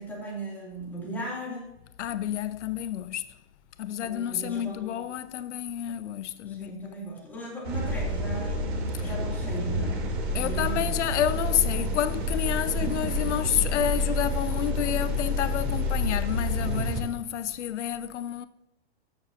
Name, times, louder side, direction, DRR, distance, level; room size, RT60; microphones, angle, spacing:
voice 1, 0.0-1.6 4.0-4.9 6.5-10.0 10.3-10.9, right 1 dB, 5° left, 2.8 m, -37 dB
voice 2, 2.0-3.3 3.8-7.1 9.0-9.1 10.3-18.5, left 11 dB, 90° left, 0.6 m, -30 dB
sound 1, 7.6-17.0, left 1 dB, 65° right, 3.0 m, -28 dB
14.0 x 7.2 x 2.8 m
hypercardioid pair, 165°, 34 cm